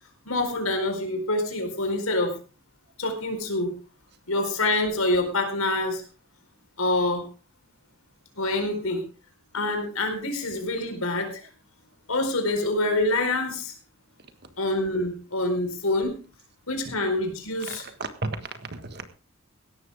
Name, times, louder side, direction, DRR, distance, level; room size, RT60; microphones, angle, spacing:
voice 1, 0.3-2.3 3.0-3.7 4.3-6.0 6.8-7.2 8.3-9.0 9.5-11.4 12.1-13.7 14.6-16.2 16.7-17.8, left 2 dB, 85° left, 5 dB, 4.5 m, -26 dB
voice 2, 17.7-19.1, right 3 dB, 50° right, 9 dB, 1.6 m, -34 dB
17.0 x 13.0 x 3.6 m, 0.35 s
head